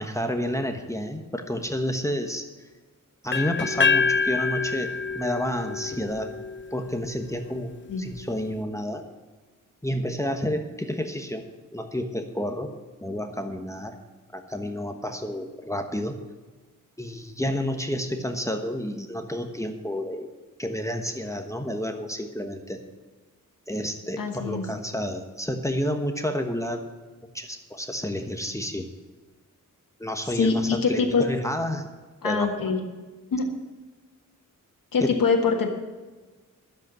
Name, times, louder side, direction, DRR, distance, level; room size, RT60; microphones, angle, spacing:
voice 1, 0.0-2.4 3.2-6.3 6.7-9.0 9.8-11.4 11.7-12.7 13.0-13.9 14.3-16.2 17.0-20.3 20.6-22.8 23.7-26.8 27.3-28.9 30.0-31.8 32.2-32.7 35.0-35.1, equal, 10° left, 5 dB, 1.2 m, -30 dB
sound 1, 3.3-7.2, left 5 dB, 35° left, 0.6 m, -26 dB
voice 2, 24.2-24.7 30.3-31.2 32.2-32.8 33.3-33.5 34.9-35.7, left 4 dB, 85° left, 2 dB, 1.5 m, -24 dB
12.0 x 7.9 x 7.6 m, 1.3 s
wide cardioid pair, 80°, 33 cm